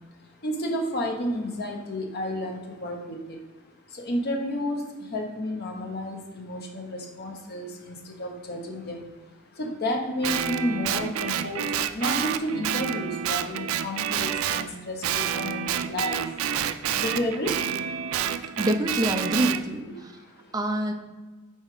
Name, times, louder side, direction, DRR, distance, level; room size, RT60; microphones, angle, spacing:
voice 1, 0.4-3.2 4.0-4.8 5.1-9.1 9.6-16.2 16.9-17.5 19.8-19.9, left 1 dB, 50° left, 2 dB, 0.9 m, -31 dB
Guitar, 10.2-14.7 15.0-19.6, right 9 dB, 80° right, 0.4 m, -28 dB
voice 2, 18.3-20.1 20.5-20.9, right 1 dB, 20° right, 3 dB, 0.6 m, -26 dB
5.5 x 4.3 x 4.9 m, 1.1 s
head